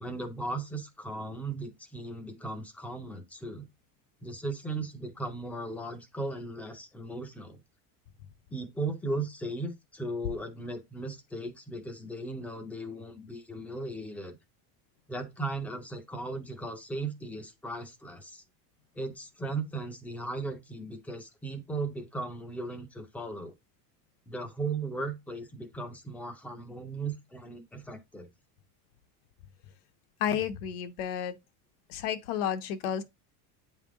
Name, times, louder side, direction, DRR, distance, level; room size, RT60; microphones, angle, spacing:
voice 1, 0.0-3.7 4.2-7.6 8.5-14.4 15.1-18.4 19.0-23.5 24.3-28.3, right 2 dB, 5° left, 0.4 m, -37 dB
voice 2, 30.2-31.3 31.9-33.0, left 9 dB, 75° left, 1.1 m, -31 dB
8.5 x 3.5 x 3.6 m
cardioid pair, 170°, 44 cm